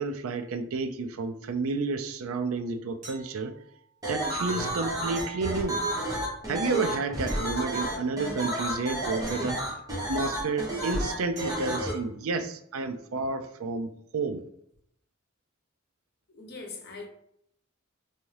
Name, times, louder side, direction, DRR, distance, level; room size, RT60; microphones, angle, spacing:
voice 1, 0.0-3.5 4.1-5.8 6.5-9.6 10.1-14.4, right 3 dB, 75° right, 0.4 m, -31 dB
sound 1, 3.0-3.8 5.1-6.2 7.3-8.3 9.3-10.3 11.4-12.0 14.7-14.8, right 4 dB, 35° right, 1.3 m, -46 dB
sound 2, 4.0-11.9, right 1 dB, 15° right, 1.0 m, -31 dB
voice 2, 16.3-17.1, left 4 dB, 50° left, 0.8 m, -41 dB
3.5 x 2.7 x 3.2 m
head